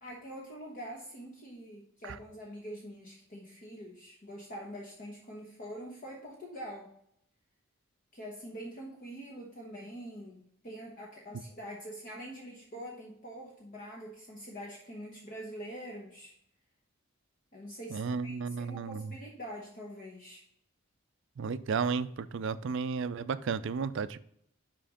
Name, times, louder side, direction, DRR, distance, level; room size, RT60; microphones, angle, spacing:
voice 1, 0.0-6.9 8.1-16.3 17.5-20.4, equal, 40° left, 1.1 m, -45 dB
voice 2, 17.9-19.1 21.4-24.2, right 5 dB, 60° right, 0.4 m, -33 dB
5.7 x 5.2 x 5.0 m
head